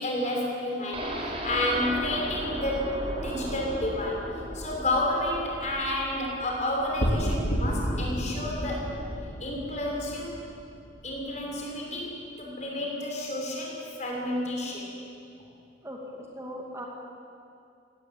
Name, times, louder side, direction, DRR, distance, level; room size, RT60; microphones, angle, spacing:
voice 1, 0.0-4.3 4.5-8.9 9.4-10.4 11.0-14.9, left 1 dB, 40° left, -2 dB, 6.4 m, -30 dB
sound 1, 0.9-8.8 9.1-9.2 9.6-9.7, right 1 dB, 30° right, 4.5 m, -37 dB
sound 2, 7.0-11.4, equal, 70° left, 3.7 m, -31 dB
voice 2, 15.8-16.9, equal, 15° right, -1 dB, 2.5 m, -39 dB
23.0 x 19.0 x 9.2 m, 2.5 s
head